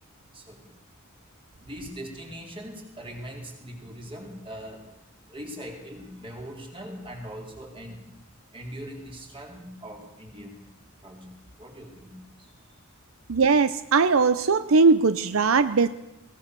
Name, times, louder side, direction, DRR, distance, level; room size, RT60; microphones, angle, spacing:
voice 1, 0.3-0.6 1.6-4.9 5.3-8.1 8.5-10.6 11.0-11.3 11.6-12.5, equal, 25° right, 1 dB, 4.4 m, -41 dB
voice 2, 13.3-15.9, right 4 dB, 70° right, 13 dB, 0.7 m, -20 dB
21.0 x 19.0 x 6.9 m, 0.92 s
head